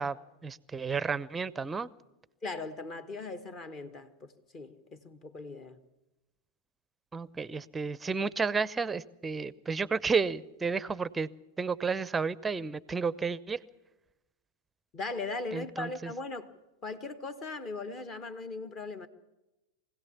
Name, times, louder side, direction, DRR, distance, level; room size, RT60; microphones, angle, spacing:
voice 1, 0.0-1.9 7.1-11.3 11.6-13.6 15.5-16.1, right 5 dB, 15° right, 0.6 m, -32 dB
voice 2, 2.4-5.8 14.9-16.5 16.8-19.1, left 3 dB, 30° left, 1.4 m, -39 dB
24.5 x 17.0 x 7.1 m
figure-of-eight pair, 90°, 0 cm